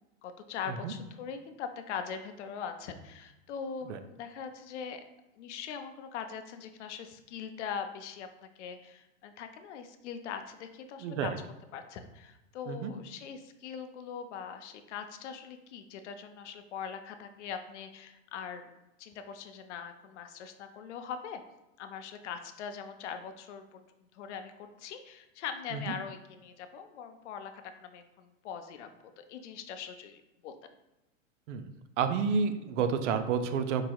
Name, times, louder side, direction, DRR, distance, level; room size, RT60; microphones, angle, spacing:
voice 1, 0.0-5.0 5.4-11.3 11.7-18.7 19.0-21.4 21.8-23.8 24.1-28.9 29.2-30.7, left 7 dB, 65° left, 8 dB, 0.5 m, -41 dB
voice 2, 11.0-11.4 12.7-12.9 25.7-25.8 31.5-31.7 32.0-33.9, right 6 dB, 70° right, 9 dB, 0.5 m, -30 dB
4.6 x 2.9 x 2.3 m, 0.98 s
hypercardioid pair, 125°, 38 cm